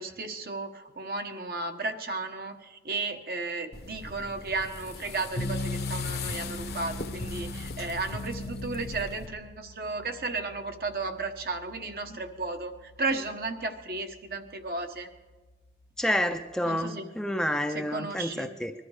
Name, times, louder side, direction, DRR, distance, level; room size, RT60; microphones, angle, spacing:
voice 1, 0.0-15.1 16.6-17.1 17.7-18.5, right 3 dB, 55° right, 6 dB, 1.2 m, -34 dB
sound 1, 3.7-9.3, left 5 dB, 60° left, 1.0 m, -41 dB
sound 2, 5.4-16.5, left 1 dB, 90° left, 1.1 m, -40 dB
voice 2, 16.0-18.7, equal, 5° left, 6 dB, 0.5 m, -29 dB
21.0 x 12.5 x 4.9 m, 1.3 s
head